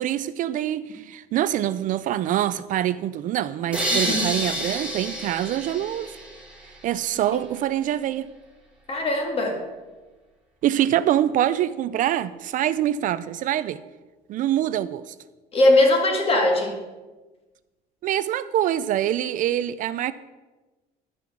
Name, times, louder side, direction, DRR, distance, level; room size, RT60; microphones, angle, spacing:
voice 1, 0.0-6.2 6.8-8.3 10.6-13.8 14.3-15.1 18.0-20.1, right 12 dB, 50° right, 0.4 m, -25 dB
sound 1, 3.7-6.7, right 1 dB, 5° right, 2.3 m, -28 dB
voice 2, 3.9-4.3 8.9-9.6 15.5-16.8, left 2 dB, 35° left, 2.2 m, -20 dB
12.0 x 5.8 x 6.1 m
cardioid pair, 125°, 17 cm